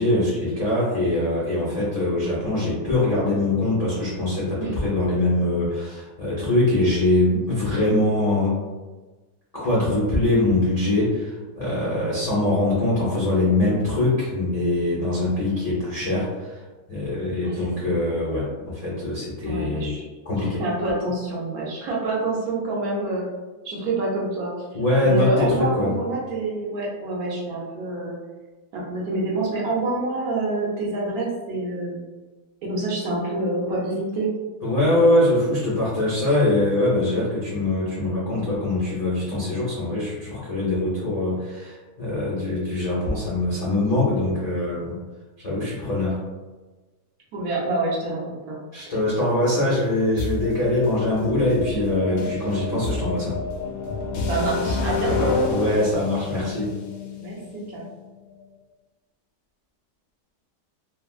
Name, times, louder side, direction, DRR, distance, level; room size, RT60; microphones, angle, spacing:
voice 1, 0.0-8.5 9.5-16.6 16.9-20.0 20.2-20.6 24.7-25.9 34.6-45.0 45.4-46.2 48.7-53.4 55.0-56.7, left 2 dB, 45° left, -9 dB, 0.5 m, -23 dB
voice 2, 11.9-12.2 17.4-17.9 19.4-20.1 20.6-23.3 23.6-24.5 25.0-28.2 28.7-32.0 32.6-34.3 47.3-48.6 54.3-55.5 57.2-57.9, right 2 dB, 65° right, -4 dB, 1.1 m, -27 dB
sound 1, 50.2-58.1, left 4 dB, 75° left, 1.1 m, -29 dB
3.3 x 2.2 x 2.3 m, 1.2 s
omnidirectional pair, 1.8 m